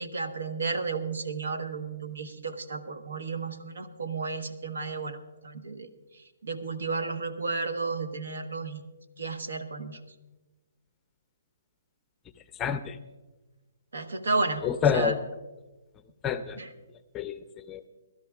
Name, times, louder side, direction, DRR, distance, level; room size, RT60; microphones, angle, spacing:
voice 1, 0.0-5.2 5.4-5.9 6.4-8.8 9.2-10.0 13.9-14.6 14.9-15.1 16.6-16.7, right 4 dB, 80° right, 7 dB, 1.3 m, -32 dB
voice 2, 12.5-13.0 14.6-15.2 16.2-16.6 17.1-17.9, left 7 dB, 15° left, 11 dB, 0.5 m, -28 dB
23.0 x 12.5 x 2.4 m, 1.1 s
hypercardioid pair, 150°, 0 cm